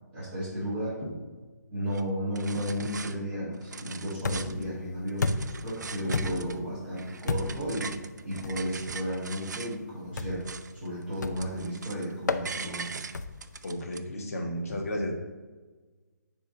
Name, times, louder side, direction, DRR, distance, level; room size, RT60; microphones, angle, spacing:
voice 1, 0.1-1.0 1.7-7.9 8.2-10.4 10.8-12.9, equal, 10° right, -16 dB, 2.0 m, -33 dB
sound 1, 1.9-2.0 2.3-3.1 3.5-4.7 5.1-6.6 6.9-9.8 10.1-10.9 11.1-12.1 12.4-14.0, right 5 dB, 70° right, 0.5 m, -41 dB
sound 2, 4.2-4.7 5.2-5.7 6.1-6.6 7.3-7.7 8.4-8.6 10.2-10.5 11.2-11.6 12.3-12.5 13.1-13.5, left 4 dB, 70° left, 0.5 m, -31 dB
voice 2, 13.6-15.1, left 1 dB, 50° left, 0 dB, 1.4 m, -33 dB
9.4 x 3.6 x 3.8 m, 1.3 s
hypercardioid pair, 170°, 10 cm